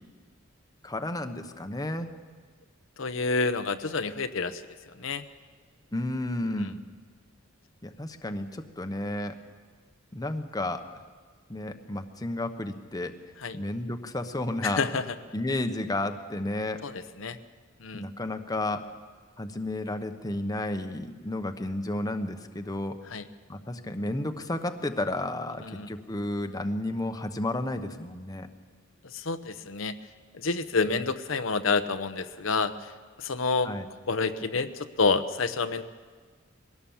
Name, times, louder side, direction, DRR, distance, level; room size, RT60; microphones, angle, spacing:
voice 1, 0.8-2.1 5.9-6.8 7.8-9.4 10.1-10.8 11.5-13.1 13.5-14.8 15.3-16.8 17.9-18.8 19.4-23.0 23.5-28.5 30.9-31.1 33.6-33.8, left 1 dB, 20° left, 7 dB, 1.0 m, -32 dB
voice 2, 3.0-4.6 5.0-5.2 6.5-6.7 13.4-13.6 14.6-15.1 16.8-17.4 17.8-18.1 23.1-23.3 25.6-25.9 29.0-30.0 30.3-32.9 33.2-33.7 34.1-35.8, left 4 dB, 70° left, 9 dB, 0.9 m, -28 dB
22.0 x 17.0 x 7.2 m, 1.5 s
head